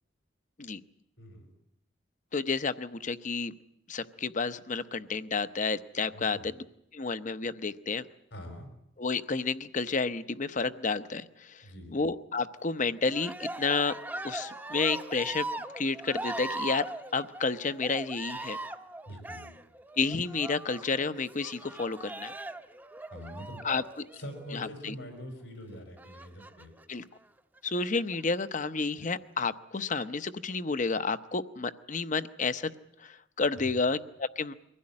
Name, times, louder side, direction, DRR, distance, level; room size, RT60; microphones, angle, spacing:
voice 1, 1.2-1.5 6.1-6.5 8.3-8.7 11.6-12.0 19.1-19.5 23.1-23.6 24.1-26.7 33.6-33.7, equal, 90° left, 4 dB, 5.2 m, -44 dB
voice 2, 2.3-3.5 3.9-6.5 6.9-8.0 9.0-11.6 11.9-13.9 14.2-15.5 15.8-16.8 17.1-18.6 20.0-22.3 23.6-24.1 24.5-24.9 26.9-27.0 27.6-32.7 33.0-34.5, left 4 dB, 45° left, 13 dB, 0.8 m, -31 dB
Cheering, 13.0-24.7 26.0-26.8 27.6-28.2, right 2 dB, 10° right, 0.8 m, -40 dB
23.0 x 16.0 x 9.7 m, 0.78 s
head